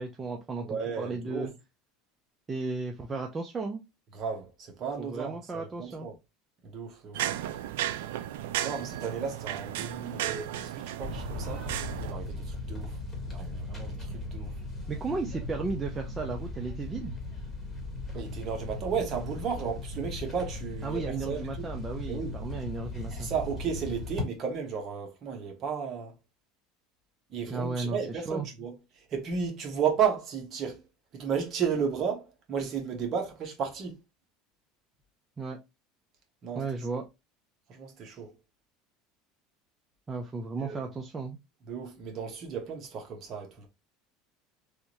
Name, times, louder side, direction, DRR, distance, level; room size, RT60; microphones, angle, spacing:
voice 1, 0.0-1.5 2.5-3.8 5.0-6.1 14.9-17.2 20.8-23.3 27.5-28.5 35.4-35.6 36.5-37.0 40.1-41.4, right 3 dB, 20° right, 0.5 m, -34 dB
voice 2, 0.6-1.5 4.1-6.1 6.6-7.2 8.6-11.6 12.0-13.0 13.2-14.5 18.1-21.7 22.1-22.3 23.1-26.1 27.3-28.7 29.1-30.8 31.1-34.0 36.4-36.6 37.7-38.3 40.6-40.8 41.7-43.7, right 6 dB, 45° right, 1.2 m, -33 dB
sound 1, 7.1-12.1, right 12 dB, 85° right, 0.4 m, -34 dB
sound 2, 11.0-24.3, left 2 dB, 10° left, 1.6 m, -38 dB
3.5 x 2.6 x 3.0 m
supercardioid pair, 120°, 0 cm